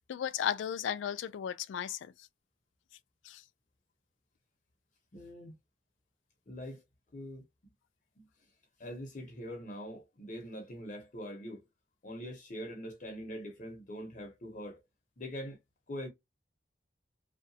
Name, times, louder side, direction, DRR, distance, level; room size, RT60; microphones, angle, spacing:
voice 1, 0.0-2.1 3.2-3.4, left 9 dB, 85° left, 0.3 m, -35 dB
voice 2, 5.1-5.5 6.5-6.8 7.1-7.5 8.2-8.3 8.8-11.6 12.0-14.8 15.2-15.6 15.9-16.1, equal, 40° left, 0.7 m, -43 dB
2.7 x 2.2 x 2.7 m
head